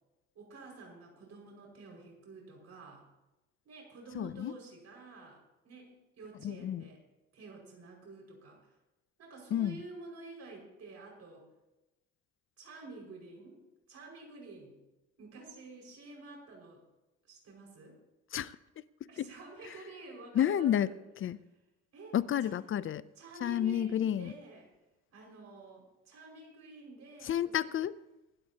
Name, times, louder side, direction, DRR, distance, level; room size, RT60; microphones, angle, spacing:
voice 1, 0.4-3.0 3.7-7.0 7.3-8.6 9.2-11.4 12.6-13.6 13.9-14.8 15.2-16.8 17.3-18.0 19.1-21.0 21.9-22.2 22.5-22.6 23.2-24.7 25.1-27.7, right 3 dB, 55° right, 5.4 m, -50 dB
voice 2, 4.1-4.5 6.4-6.8 9.5-9.8 18.3-18.8 19.2-19.3 19.7-19.8 20.3-20.9 21.2-21.4 22.1-23.1 23.4-24.3 27.2-28.0, left 10 dB, 40° left, 0.5 m, -31 dB
25.5 x 12.0 x 2.8 m
cardioid pair, 120°, 31 cm